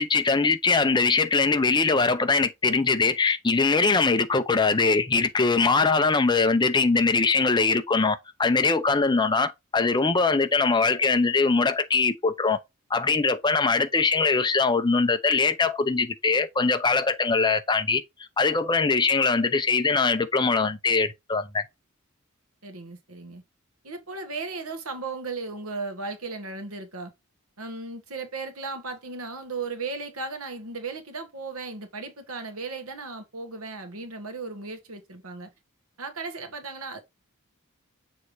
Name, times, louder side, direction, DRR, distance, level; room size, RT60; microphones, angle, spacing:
voice 1, 0.0-12.6 12.9-18.0 18.4-21.6, left 4 dB, 20° left, 0.6 m, -22 dB
voice 2, 22.6-23.4 23.8-27.1 27.6-35.5 36.0-37.0, right 3 dB, 90° right, 1.5 m, -36 dB
6.9 x 3.2 x 4.7 m
head